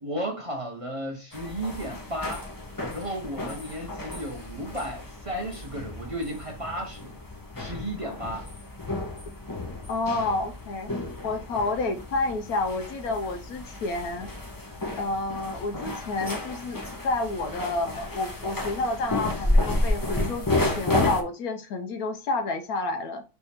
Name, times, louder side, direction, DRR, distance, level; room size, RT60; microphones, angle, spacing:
voice 1, 0.0-2.4 2.9-7.2 7.6-8.5, right 1 dB, 55° right, 0.3 m, -34 dB
sound 1, 1.3-21.2, left 2 dB, 20° left, 0.5 m, -31 dB
voice 2, 9.9-10.9 11.2-14.3 15.0-16.8 17.0-23.2, left 2 dB, 70° left, 1.0 m, -29 dB
3.5 x 3.4 x 4.2 m
omnidirectional pair, 1.8 m